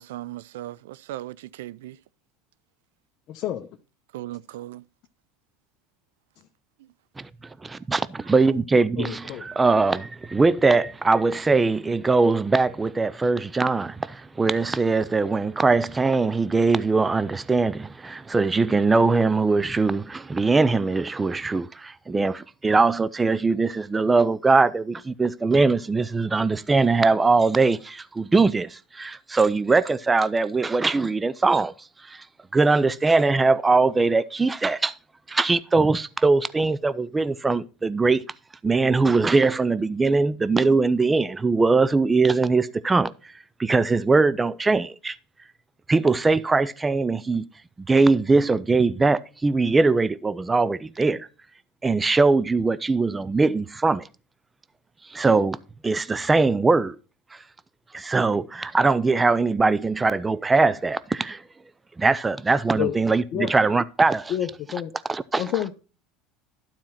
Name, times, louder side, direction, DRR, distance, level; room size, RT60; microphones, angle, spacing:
voice 1, 0.0-2.0 4.1-4.8, right 15 dB, 85° right, 0.3 m, -37 dB
voice 2, 3.3-3.7 9.0-9.4 62.8-63.0 63.3-63.5 64.3-64.9 65.4-65.7, left 11 dB, 55° left, 0.8 m, -28 dB
voice 3, 7.6-31.7 32.1-32.2 32.5-34.9 35.3-38.3 38.6-43.1 43.6-45.1 45.9-47.4 47.9-51.3 51.8-54.1 55.1-55.6 55.8-57.0 57.9-61.4 62.0-64.3 65.1-65.4, right 3 dB, 15° right, 0.5 m, -21 dB
12.0 x 4.4 x 5.7 m
supercardioid pair, 105°, 0 cm